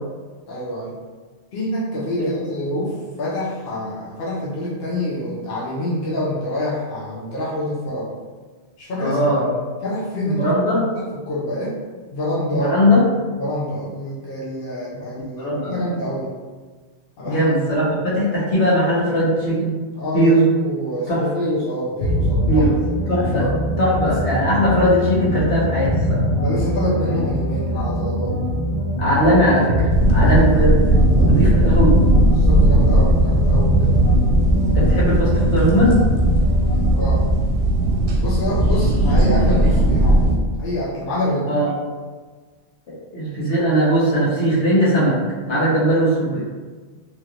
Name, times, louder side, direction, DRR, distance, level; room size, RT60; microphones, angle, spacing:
voice 1, 0.5-0.9 1.5-8.1 8.8-9.2 9.8-10.5 10.9-11.8 12.1-12.8 13.4-16.3 17.2-17.9 19.9-22.7 23.3-23.5 24.0-24.2 26.4-28.4 30.2-30.8 31.1-31.7 32.3-34.0 36.9-37.2 38.2-41.5, left 1 dB, 65° left, -7 dB, 0.9 m, -26 dB
voice 2, 9.0-9.4 10.2-10.8 12.5-13.0 15.2-15.8 17.2-19.7 20.1-20.5 21.1-21.2 22.5-22.7 23.1-23.4 23.8-26.3 29.0-30.7 31.2-32.0 34.7-36.0 41.5-41.7 42.9-45.2 45.5-46.4, equal, 85° left, -7 dB, 1.4 m, -19 dB
sound 1, 22.0-37.4, equal, 45° left, 0.4 m, -23 dB
sound 2, 29.9-40.4, right 1 dB, 70° right, 0.8 m, -17 dB
3.1 x 2.9 x 2.4 m, 1.4 s
omnidirectional pair, 1.1 m